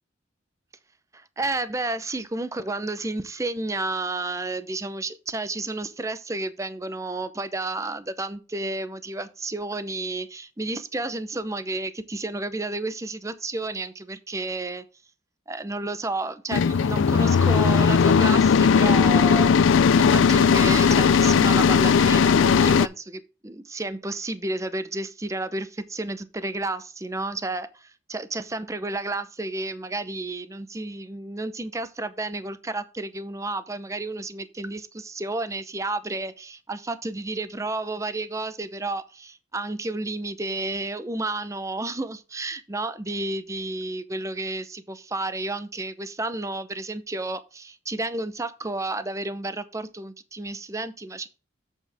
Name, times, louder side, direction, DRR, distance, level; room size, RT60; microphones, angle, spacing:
voice 1, 1.1-14.8 15.5-51.3, right 2 dB, 15° right, 0.6 m, -31 dB
sound 1, 16.5-22.9, left 6 dB, 80° left, 0.4 m, -18 dB
7.9 x 7.3 x 3.4 m
head